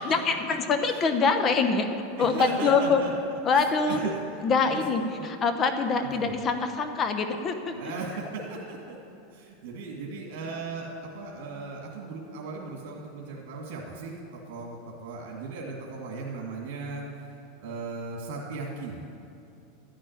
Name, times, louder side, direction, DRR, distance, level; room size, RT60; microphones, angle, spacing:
voice 1, 0.0-1.9 2.2-3.0 3.4-4.1 4.4-7.7, left 4 dB, 30° left, 7 dB, 0.9 m, -24 dB
voice 2, 2.2-3.1 3.5-4.8 5.1-5.3 6.1-6.3 7.7-9.0 9.3-10.9 11.1-19.2, right 3 dB, 65° right, -2 dB, 2.2 m, -37 dB
12.5 x 6.3 x 9.3 m, 2.7 s
supercardioid pair, 135°, 0 cm